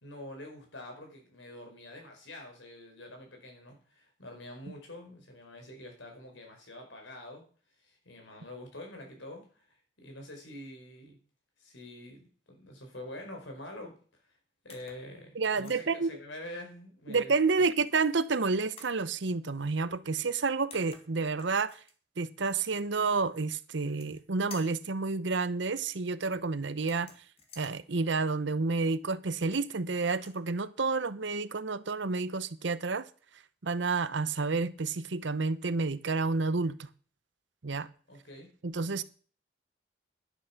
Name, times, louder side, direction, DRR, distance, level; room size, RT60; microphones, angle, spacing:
voice 1, 0.0-7.4 7.8-11.2 11.6-13.9 14.6-17.3 17.6-17.7 38.1-38.5, left 1 dB, 85° left, 4.9 m, -46 dB
sound 1, 14.7-15.1 15.5-15.8 17.5-18.1 18.8-19.0 20.3-20.4 20.7-21.9 23.7-24.2 24.5-24.9 26.8-27.7 29.3-29.8 30.1-30.4, left 4 dB, 30° left, 1.9 m, -52 dB
voice 2, 15.3-16.2 17.1-21.8 22.2-27.1 27.6-33.1 33.6-36.9 37.6-37.9 38.6-39.0, right 4 dB, 75° right, 0.8 m, -30 dB
11.0 x 10.0 x 5.9 m
head